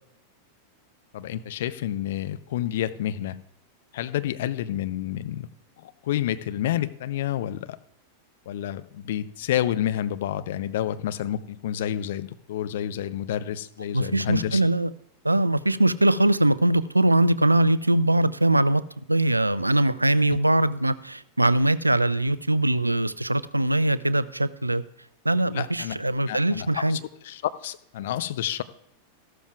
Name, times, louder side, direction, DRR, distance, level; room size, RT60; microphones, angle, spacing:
voice 1, 1.1-3.4 3.9-5.5 5.8-7.8 8.5-14.6 20.3-20.4 25.5-26.0 26.2-27.0 27.3-28.6, left 11 dB, 55° left, 12 dB, 0.6 m, -29 dB
voice 2, 13.9-14.9 15.2-18.8 19.1-24.8 25.2-27.0, right 1 dB, 85° right, 18 dB, 0.4 m, -22 dB
14.0 x 12.5 x 2.4 m, 0.76 s
figure-of-eight pair, 90°, 0 cm